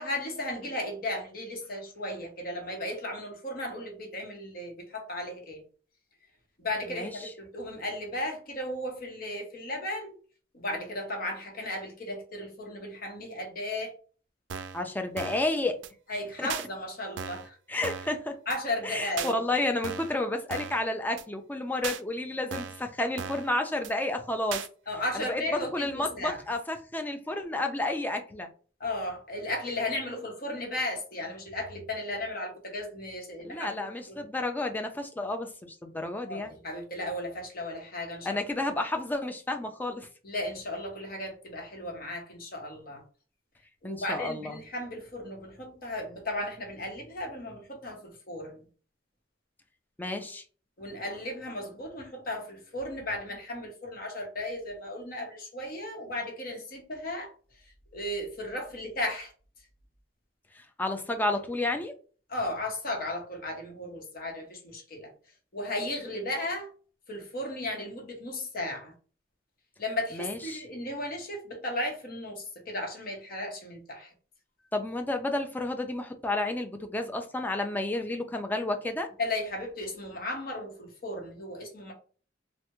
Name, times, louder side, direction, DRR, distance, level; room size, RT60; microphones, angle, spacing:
voice 1, 0.0-5.6 6.6-10.1 10.5-13.9 16.1-17.6 18.5-19.4 24.9-26.4 28.8-34.2 36.3-38.4 40.2-43.0 43.8-48.7 50.8-57.3 57.6-59.3 62.3-65.1 65.5-66.7 67.1-68.9 69.8-74.1 79.2-81.9, left 1 dB, 50° left, 0.9 m, -35 dB
sound 1, 14.5-14.8 15.2-15.5 15.8-15.9 16.5-16.7 17.2-17.5 17.8-18.2 18.5-18.6 19.2-19.3 19.8-20.2 20.5-20.8 21.2-21.3 21.8-22.0 22.5-22.8 23.2-23.5 23.8-23.9 24.5-24.7, right 7 dB, 75° right, 0.3 m, -37 dB
voice 2, 14.7-15.8 16.4-16.5 17.7-18.4 18.8-24.6 25.1-28.5 33.4-36.5 38.2-40.1 43.8-44.6 50.0-50.4 60.5-61.9 70.1-70.6 74.7-79.1, left 2 dB, 10° left, 0.3 m, -31 dB
3.3 x 2.1 x 2.9 m
head